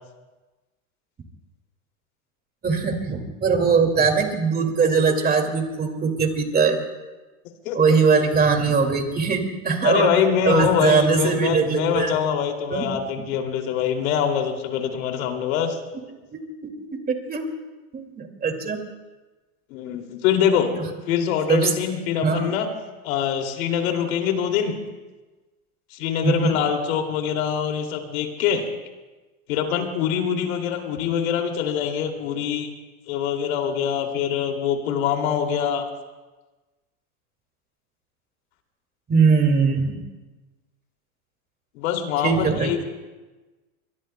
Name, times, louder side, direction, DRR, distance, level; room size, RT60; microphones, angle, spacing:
voice 1, 2.6-6.8 7.7-10.1 10.4-12.1 12.7-12.8 16.3-17.5 17.9-18.8 21.5-21.7 22.2-22.5 26.2-26.5 39.1-40.0 42.2-42.8, right 5 dB, 20° right, 4 dB, 2.3 m, -21 dB
voice 2, 9.8-15.8 19.7-20.7 21.1-22.7 23.0-24.7 25.9-28.7 29.5-32.7 33.1-35.8 41.7-42.8, left 8 dB, 70° left, 3 dB, 2.7 m, -24 dB
23.5 x 22.5 x 2.2 m, 1.2 s
supercardioid pair, 130°, 42 cm